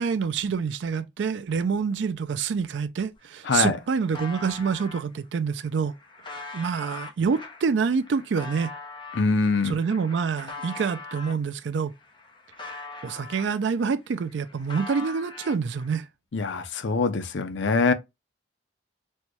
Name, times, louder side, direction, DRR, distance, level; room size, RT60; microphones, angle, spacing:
voice 1, 0.0-5.9 6.3-8.7 9.6-11.9 13.0-16.1, right 5 dB, 65° right, 0.4 m, -27 dB
sound 1, 3.1-3.2 3.5-5.0 5.6-11.4 11.9-13.8 14.1-15.9, left 3 dB, 25° left, 0.8 m, -42 dB
voice 2, 3.4-3.8 9.1-9.8 16.3-17.9, left 4 dB, 70° left, 0.6 m, -23 dB
4.2 x 2.2 x 3.0 m
head